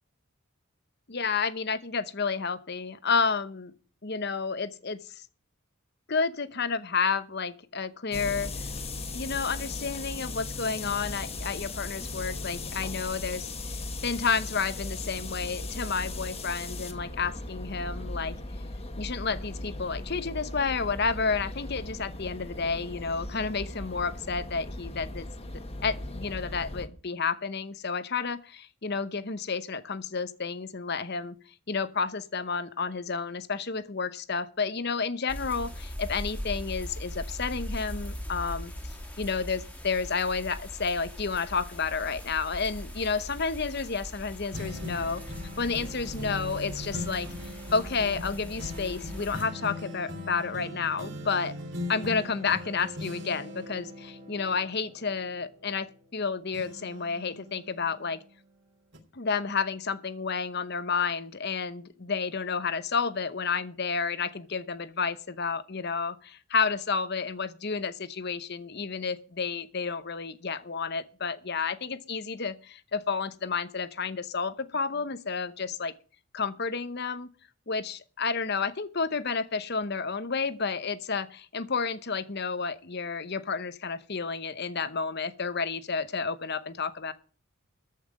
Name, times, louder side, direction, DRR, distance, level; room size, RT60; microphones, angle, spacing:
voice 1, 1.1-3.7 4.0-5.0 6.1-8.5 9.1-13.5 14.0-18.3 19.0-25.3 25.8-31.4 31.7-45.2 45.6-47.3 47.7-51.6 51.9-58.2 59.1-75.9 76.3-77.3 77.7-87.1, left 5 dB, 50° left, 0.9 m, -31 dB
sound 1, 8.1-26.9, left 2 dB, 25° left, 1.4 m, -38 dB
sound 2, 35.3-49.4, equal, 5° left, 2.0 m, -40 dB
sound 3, 44.5-56.2 56.5-58.4 58.9-59.0, left 1 dB, 55° right, 3.0 m, -40 dB
14.0 x 5.7 x 8.4 m
head